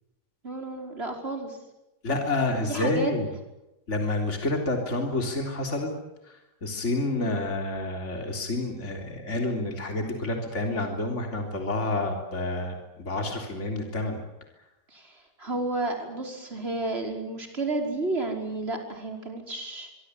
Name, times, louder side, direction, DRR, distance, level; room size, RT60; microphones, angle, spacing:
voice 1, 0.4-1.6 2.7-3.1 7.2-7.4 14.9-19.9, right 2 dB, 35° right, 3 dB, 5.7 m, -32 dB
voice 2, 2.0-3.3 3.9-5.9 6.3-14.2, left 2 dB, 45° left, 3 dB, 3.9 m, -29 dB
26.0 x 23.5 x 8.2 m, 0.92 s
omnidirectional pair, 1.8 m